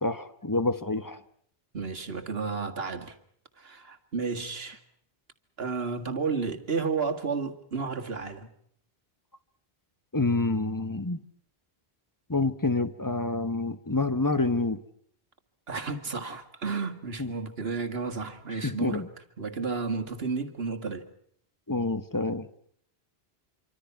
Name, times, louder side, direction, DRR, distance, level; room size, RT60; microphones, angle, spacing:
voice 1, 0.0-1.2 10.1-11.2 12.3-14.8 17.2-17.3 18.6-19.1 21.7-22.5, left 3 dB, 20° left, 1.2 m, -27 dB
voice 2, 1.7-3.1 3.6-4.8 5.6-8.5 15.7-19.1 19.4-21.1, right 4 dB, 70° right, 2.1 m, -32 dB
26.5 x 25.0 x 5.8 m
omnidirectional pair, 1.0 m